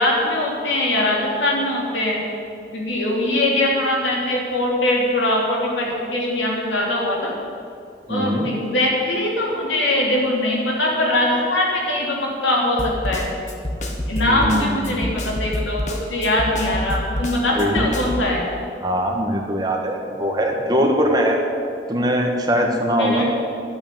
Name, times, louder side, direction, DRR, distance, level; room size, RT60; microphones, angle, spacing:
voice 1, 0.0-2.2 2.7-7.3 8.1-13.3 14.1-18.5 23.0-23.3, left 1 dB, 90° left, -2 dB, 3.4 m, -21 dB
voice 2, 8.1-8.5 14.2-15.0 17.5-17.8 18.8-21.4 21.9-23.3, equal, 20° right, 1 dB, 1.6 m, -21 dB
Snare drum, 12.8-18.3, left 1 dB, 40° left, 1.4 m, -27 dB
11.5 x 8.6 x 9.5 m, 2.4 s
head